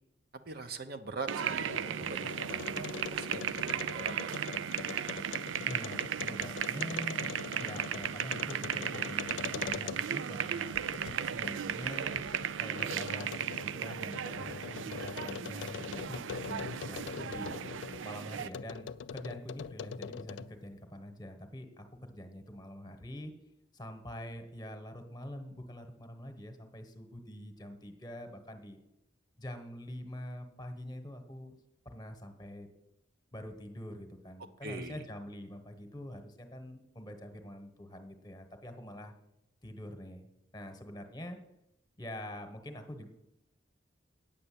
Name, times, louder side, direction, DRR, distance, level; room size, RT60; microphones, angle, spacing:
voice 1, 0.5-4.6 34.6-35.0, right 3 dB, 55° right, 7 dB, 0.8 m, -43 dB
sound 1, 1.3-10.3 10.7-18.0 18.5-20.6, left 6 dB, 75° left, 0.4 m, -43 dB
sound 2, 1.3-18.5, right 8 dB, 90° right, 0.4 m, -36 dB
voice 2, 5.6-10.9 11.2-12.2 12.6-17.6 18.0-23.3 23.7-28.8 29.4-31.6 31.8-32.7 33.3-39.1 39.6-41.4 42.0-43.1, left 1 dB, 20° left, 7 dB, 1.2 m, -45 dB
9.1 x 6.8 x 8.5 m, 0.84 s
head